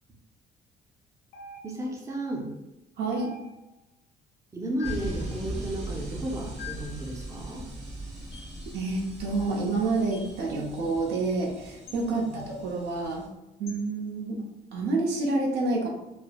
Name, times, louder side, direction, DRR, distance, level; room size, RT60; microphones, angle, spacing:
sound 1, 1.3-2.0 3.1-3.8 4.8-5.2 6.6-7.0 8.3-8.6 10.1-10.4 11.9-12.1 13.7-13.8, left 6 dB, 90° left, 0.7 m, -44 dB
voice 1, 1.6-2.5 4.5-7.7 12.0-12.4, right 1 dB, 15° right, -1 dB, 0.5 m, -34 dB
voice 2, 3.0-3.3 8.7-13.3 13.6-14.4 14.7-15.9, right 3 dB, 75° right, -1 dB, 0.7 m, -28 dB
sound 2, 4.8-13.3, right 1 dB, 40° right, 1.0 m, -39 dB
3.1 x 2.0 x 2.3 m, 0.94 s
cardioid pair, 110°, 17 cm